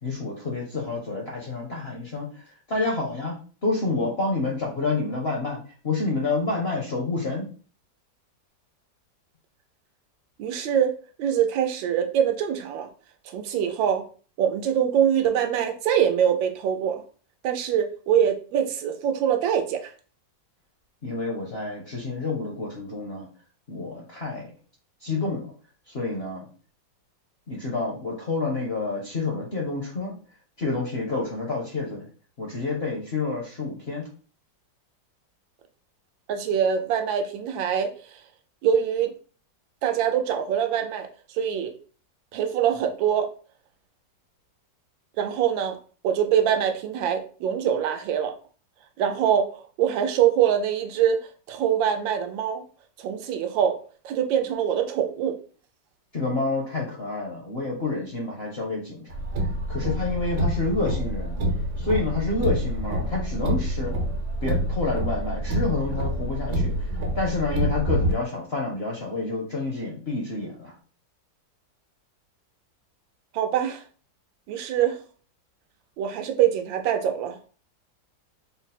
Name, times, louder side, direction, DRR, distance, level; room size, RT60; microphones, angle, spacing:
voice 1, 0.0-2.4 2.7-3.3 3.6-7.5 21.0-23.3 23.7-24.5 25.0-25.4 25.9-26.5 27.5-30.1 30.6-32.1 32.4-34.1 56.1-59.3 59.7-61.3 61.8-63.9 64.4-66.9 67.1-70.7, left 3 dB, 55° left, -2 dB, 0.7 m, -28 dB
voice 2, 10.4-10.9 11.2-12.9 13.3-14.0 14.4-17.0 17.4-19.8 36.3-37.9 38.6-39.1 39.8-41.1 41.3-41.7 42.3-43.3 45.2-45.8 46.0-48.3 49.0-51.2 51.5-52.6 53.0-53.8 54.0-55.3 73.3-73.8 74.5-75.0 76.0-77.4, right 9 dB, 85° right, 5 dB, 1.4 m, -24 dB
Car, 59.1-68.1, equal, 70° right, 1.4 m, -27 dB
4.0 x 2.0 x 4.1 m, 0.40 s
omnidirectional pair, 2.0 m